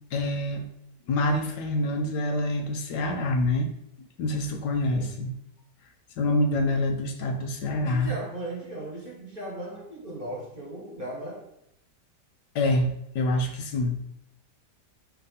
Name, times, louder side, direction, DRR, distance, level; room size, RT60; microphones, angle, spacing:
voice 1, 0.1-0.7 1.1-3.7 4.2-5.3 6.2-8.1 12.5-14.0, left 1 dB, 75° left, 4 dB, 1.4 m, -26 dB
voice 2, 7.8-11.4, right 1 dB, 30° right, -1 dB, 1.6 m, -37 dB
5.8 x 3.5 x 5.6 m, 0.77 s
omnidirectional pair, 1.8 m